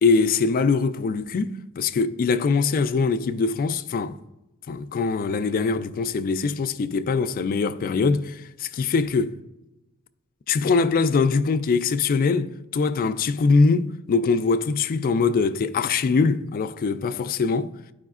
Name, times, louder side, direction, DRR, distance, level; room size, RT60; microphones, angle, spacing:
voice 1, 0.0-4.2 4.7-9.3 10.5-17.7, left 4 dB, 40° left, 0.3 m, -22 dB
11.5 x 4.9 x 2.4 m
head